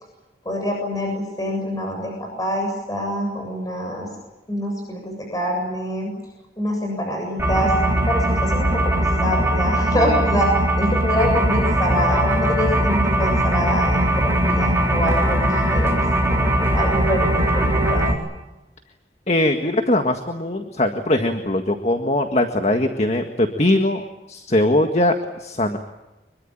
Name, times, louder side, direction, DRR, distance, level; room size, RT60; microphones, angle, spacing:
voice 1, 0.4-4.1 4.5-6.1 6.6-7.7 8.1-18.1, equal, 20° left, 1 dB, 7.4 m, -25 dB
sound 1, 7.4-18.1, right 1 dB, 15° right, 4.0 m, -20 dB
voice 2, 19.3-25.1 25.4-25.8, left 1 dB, 40° left, 5 dB, 1.8 m, -21 dB
25.5 x 23.0 x 8.8 m, 1.0 s
head